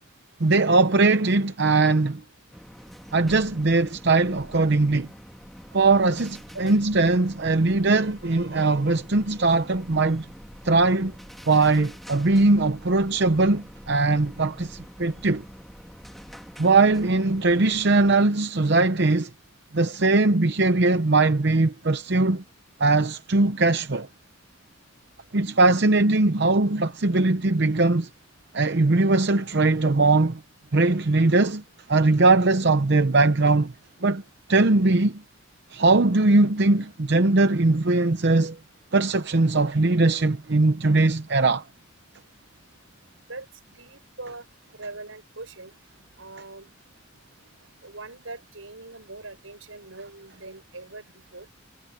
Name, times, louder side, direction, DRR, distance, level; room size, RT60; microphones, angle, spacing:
voice 1, 0.4-2.2 3.1-5.1 5.7-10.2 10.6-11.1 11.5-15.4 16.6-19.3 19.7-22.4 22.8-24.1 25.3-28.1 28.5-30.4 30.7-31.6 31.9-33.7 34.0-34.2 34.5-35.2 35.7-38.6 38.9-41.6, right 3 dB, 55° right, 0.8 m, -20 dB
sound 1, 2.5-18.3, equal, ahead, 2.9 m, -45 dB
voice 2, 43.3-44.5 44.7-45.7 46.2-46.7 47.8-51.5, right 2 dB, 85° right, 6.4 m, -41 dB
head